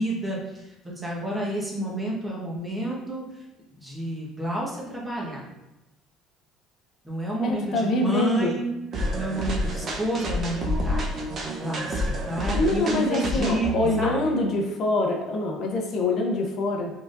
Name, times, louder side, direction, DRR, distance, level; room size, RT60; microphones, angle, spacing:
voice 1, 0.0-3.2 3.8-5.4 7.0-8.7 9.1-11.1 11.6-13.7 14.0-14.3, right 1 dB, 10° right, -4 dB, 1.3 m, -29 dB
voice 2, 7.4-8.6 12.5-16.9, left 2 dB, 50° left, 2 dB, 0.7 m, -25 dB
sound 1, 8.9-14.3, equal, 40° right, 0.8 m, -29 dB
4.7 x 3.8 x 2.6 m, 0.97 s
cardioid pair, 115°, 0 cm